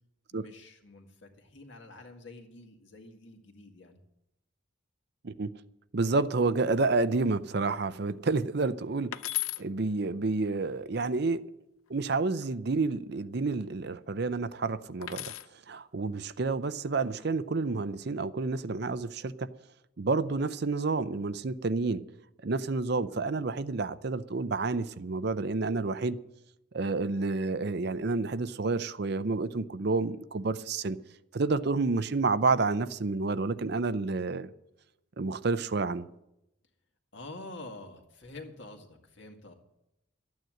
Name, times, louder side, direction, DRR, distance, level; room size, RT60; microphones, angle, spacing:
voice 1, 0.3-4.0 37.1-39.5, left 2 dB, 60° left, 2.1 m, -47 dB
voice 2, 5.9-9.1 9.6-11.4 11.9-15.2 15.7-19.5 20.0-22.0 22.4-26.2 26.7-31.0 31.3-34.5 35.2-36.1, right 3 dB, 50° right, 0.5 m, -29 dB
sound 1, 9.1-9.6 11.9-12.5 15.0-15.5 16.9-17.3, left 16 dB, 80° left, 0.6 m, -36 dB
13.0 x 9.3 x 7.6 m
head